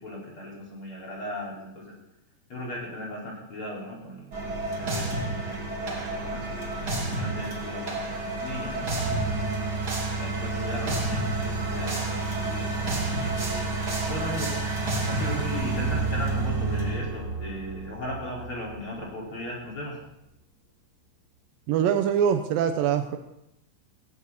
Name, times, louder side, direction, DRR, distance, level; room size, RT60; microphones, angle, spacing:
voice 1, 0.0-2.0 2.5-6.8 7.2-9.3 10.2-13.7 14.1-14.5 15.0-20.0, left 1 dB, 30° left, -4 dB, 5.2 m, -37 dB
sound 1, 4.3-19.0, right 3 dB, 30° right, 2.4 m, -29 dB
voice 2, 21.7-23.2, right 8 dB, 80° right, 7 dB, 2.0 m, -23 dB
18.5 x 16.5 x 4.2 m, 0.82 s
omnidirectional pair, 5.2 m